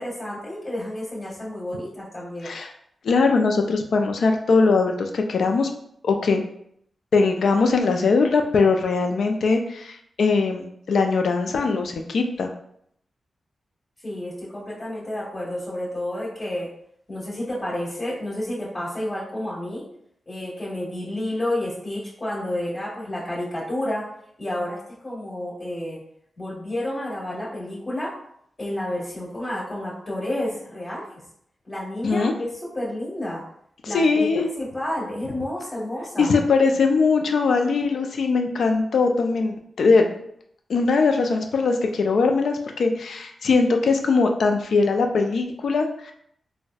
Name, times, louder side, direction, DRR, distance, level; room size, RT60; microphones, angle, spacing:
voice 1, 0.0-2.5 14.0-16.7 17.1-19.9 20.3-24.1 24.4-26.0 26.4-28.1 28.6-31.0 31.6-33.4 33.8-36.4, left 1 dB, 40° left, -8 dB, 1.4 m, -30 dB
voice 2, 3.0-5.7 6.0-6.4 7.1-12.5 32.0-32.3 33.8-34.5 36.2-40.2 40.7-46.1, left 4 dB, 80° left, 4 dB, 0.4 m, -21 dB
3.9 x 2.1 x 2.2 m, 0.70 s
cardioid pair, 60°, 0 cm